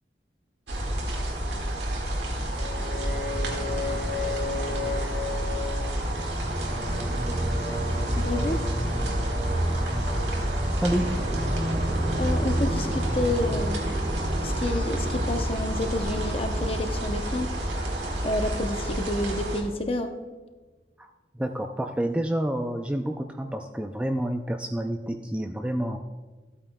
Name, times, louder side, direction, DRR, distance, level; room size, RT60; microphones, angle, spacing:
sound 1, 0.7-19.6, right 1 dB, 80° right, 1.9 m, -30 dB
sound 2, 2.5-19.3, equal, 60° right, 2.3 m, -31 dB
voice 1, 8.2-8.6 12.2-13.8 14.4-17.5 18.2-20.2, left 1 dB, 30° left, 6 dB, 0.7 m, -29 dB
voice 2, 10.8-11.2 21.0-21.1 21.3-26.0, right 1 dB, 5° right, 4 dB, 0.3 m, -28 dB
14.0 x 8.8 x 2.2 m, 1.3 s
head